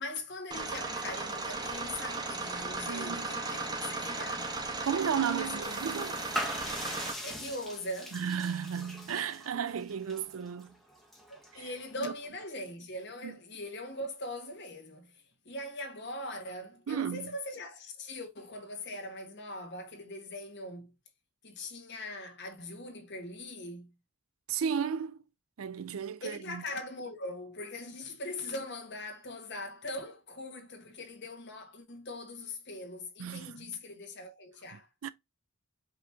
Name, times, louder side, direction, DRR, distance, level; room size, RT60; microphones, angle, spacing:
voice 1, 0.0-4.5 5.3-5.8 7.2-8.1 11.3-21.0 21.4-24.0 26.2-34.9, left 2 dB, 55° left, 1.4 m, -41 dB
sound 1, 0.5-7.1, right 3 dB, 20° right, 1.0 m, -36 dB
voice 2, 2.9-3.3 4.8-6.2 8.1-10.8 11.5-11.7 12.0-12.1 13.2-13.3 16.9-17.3 24.5-25.2 25.6-26.6 33.2-33.8 35.0-35.1, right 7 dB, 80° right, 0.5 m, -34 dB
sound 2, 5.6-12.3, equal, ahead, 0.9 m, -42 dB
5.2 x 3.0 x 3.3 m
head